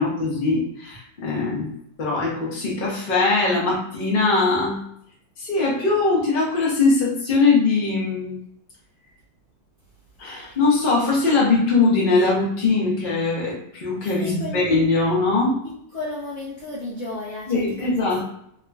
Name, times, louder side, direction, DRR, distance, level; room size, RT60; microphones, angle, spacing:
voice 1, 0.0-1.7 2.0-4.8 5.4-8.3 10.2-15.6 17.5-18.2, left 3 dB, 45° left, -3 dB, 0.7 m, -21 dB
voice 2, 14.2-14.7 15.6-18.2, left 2 dB, 80° left, -6 dB, 0.7 m, -33 dB
3.5 x 2.9 x 2.3 m, 0.71 s
omnidirectional pair, 2.3 m